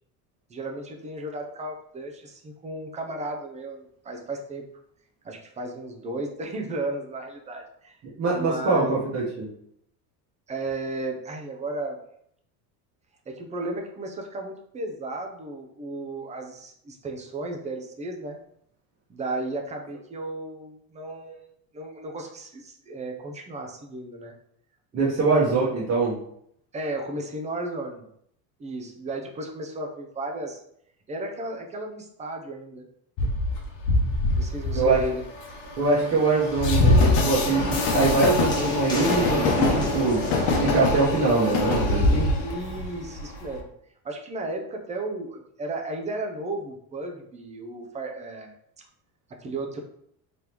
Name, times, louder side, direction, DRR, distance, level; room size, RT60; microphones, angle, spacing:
voice 1, 0.5-4.6 5.2-8.0 8.3-9.0 10.5-12.0 13.3-18.4 19.1-21.4 21.7-24.3 24.9-25.4 26.7-28.0 28.6-30.6 31.1-32.8 34.3-35.2 42.4-43.7 44.0-48.5 49.4-49.8, right 2 dB, 15° right, 2 dB, 0.5 m, -34 dB
voice 2, 8.2-9.5 24.9-26.2 34.7-35.0 35.8-40.2 40.6-42.3, right 3 dB, 35° right, -7 dB, 1.1 m, -23 dB
Train, 33.2-43.6, left 2 dB, 65° left, 1.0 m, -24 dB
sound 1, 36.6-41.9, equal, 10° left, 1.1 m, -35 dB
sound 2, 37.7-39.3, left 5 dB, 85° left, 1.4 m, -38 dB
3.7 x 3.5 x 2.9 m, 0.70 s
cardioid pair, 135°, 43 cm